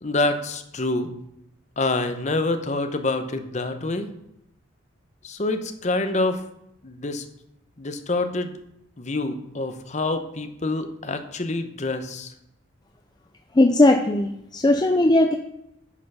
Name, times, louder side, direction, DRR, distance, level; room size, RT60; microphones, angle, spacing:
voice 1, 0.0-1.1 1.8-4.1 5.2-6.4 6.8-7.2 7.8-8.6 9.0-12.3, left 2 dB, 35° left, 8 dB, 0.8 m, -26 dB
voice 2, 13.5-15.3, left 1 dB, 20° left, 4 dB, 0.5 m, -18 dB
9.5 x 5.6 x 5.5 m, 0.81 s
head